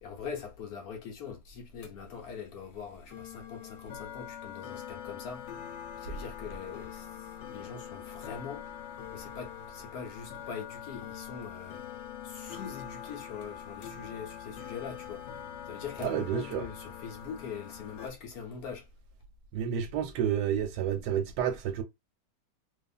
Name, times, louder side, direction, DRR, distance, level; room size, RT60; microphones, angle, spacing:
voice 1, 0.0-5.4 6.0-7.1 7.5-8.6 9.1-11.8 12.2-15.2 15.7-18.9, left 6 dB, 65° left, 1.1 m, -42 dB
sound 1, 1.8-18.1, left 9 dB, 85° left, 1.3 m, -44 dB
voice 2, 16.0-16.6 19.5-21.8, right 9 dB, 75° right, 1.1 m, -30 dB
2.7 x 2.4 x 2.3 m
omnidirectional pair, 1.9 m